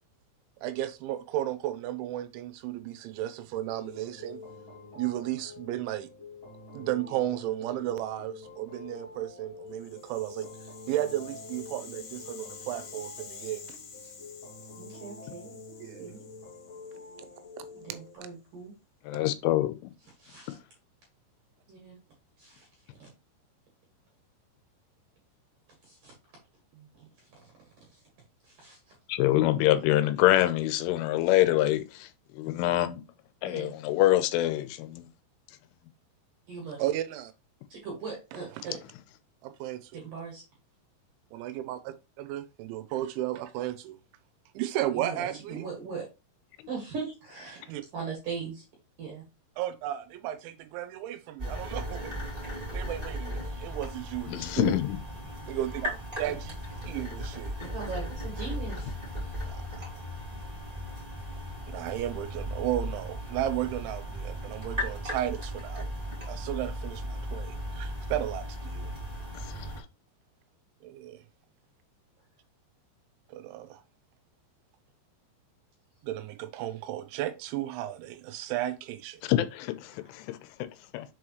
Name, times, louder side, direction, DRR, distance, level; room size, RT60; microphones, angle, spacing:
voice 1, 0.6-4.4 5.0-6.1 6.7-10.5 10.9-13.8 15.8-16.1 17.6-17.7 26.7-26.9 36.8-37.3 38.7-38.8 39.4-39.9 41.3-44.0 44.5-45.7 47.5-47.8 49.6-52.1 52.7-54.8 55.5-56.5 56.9-57.5 59.4-59.9 61.7-65.9 66.2-68.9 70.8-71.2 73.3-73.8 76.0-79.2, right 13 dB, 80° right, 3.0 m, -34 dB
sound 1, 3.7-18.2, left 3 dB, 50° left, 1.1 m, -47 dB
Rattle (instrument), 9.7-17.9, left 6 dB, 65° left, 1.5 m, -49 dB
voice 2, 14.8-15.5 16.0-16.2 17.8-18.7 20.2-20.6 21.7-22.0 22.4-23.1 25.8-26.1 28.4-28.8 33.5-33.7 36.5-36.8 37.7-38.8 39.9-40.4 44.9-46.1 46.7-48.6 49.0-49.2 56.2-56.3 57.6-58.9, right 5 dB, 55° right, 2.6 m, -39 dB
voice 3, 19.1-19.7 29.1-32.1 32.4-33.0 33.4-35.1 54.3-55.0 69.4-69.7 79.3-80.4 80.9-81.1, left 14 dB, 90° left, 3.2 m, -25 dB
sound 2, 51.4-69.8, equal, 25° right, 0.7 m, -37 dB
6.9 x 4.9 x 3.0 m
omnidirectional pair, 5.6 m